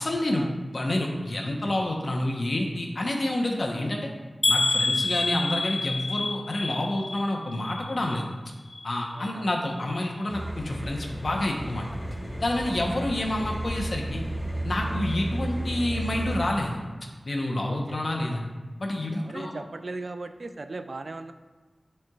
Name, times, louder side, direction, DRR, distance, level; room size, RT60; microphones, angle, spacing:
voice 1, 0.0-4.1 4.5-8.3 8.8-11.9 12.4-14.2 14.6-16.8 17.3-18.4 18.8-19.5, left 1 dB, 60° left, 0 dB, 1.0 m, -28 dB
sound 1, 4.4-8.4 8.7-9.3 9.8-9.9 10.3-10.4, left 3 dB, 45° left, 0.3 m, -28 dB
voice 2, 9.1-9.5 12.7-13.0 17.7-18.0 19.1-21.3, right 3 dB, 65° right, 8 dB, 0.4 m, -38 dB
sound 2, 10.3-16.4, right 1 dB, 15° left, 1.4 m, -33 dB
10.5 x 4.4 x 2.4 m, 1.3 s
wide cardioid pair, 80°, 0 cm